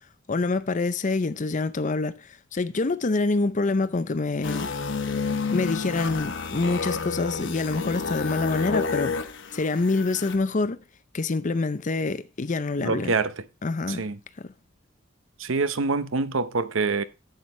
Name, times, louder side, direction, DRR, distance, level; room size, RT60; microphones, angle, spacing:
voice 1, 0.3-4.7 5.5-9.2 9.5-10.8 11.1-13.1 13.6-14.1 14.4-14.5, left 3 dB, 40° left, 0.6 m, -26 dB
sound 1, 4.4-10.4, left 4 dB, 65° left, 1.1 m, -30 dB
voice 2, 12.8-13.3 13.9-14.2 15.4-17.0, right 4 dB, 75° right, 0.8 m, -25 dB
11.0 x 8.0 x 3.2 m
head